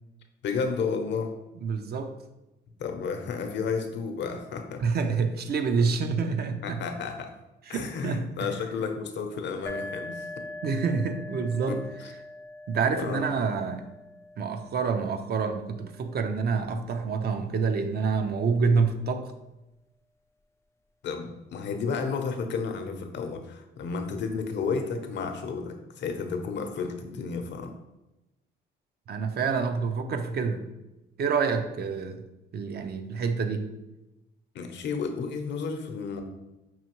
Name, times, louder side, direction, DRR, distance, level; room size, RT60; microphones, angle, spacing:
voice 1, 0.4-1.3 2.8-4.8 6.6-7.3 7.7-10.5 11.7-12.1 13.0-13.3 21.0-27.7 34.5-36.2, left 5 dB, 65° left, 6 dB, 0.6 m, -32 dB
voice 2, 1.6-2.2 4.8-6.8 7.7-8.5 10.6-11.8 12.7-13.8 14.4-19.3 29.1-30.7 31.2-32.2 32.5-33.7, right 5 dB, 55° right, 7 dB, 0.5 m, -27 dB
sound 1, 9.7-17.1, left 2 dB, 15° left, 0.3 m, -43 dB
5.5 x 2.7 x 2.9 m, 0.98 s
cardioid pair, 90°, 20 cm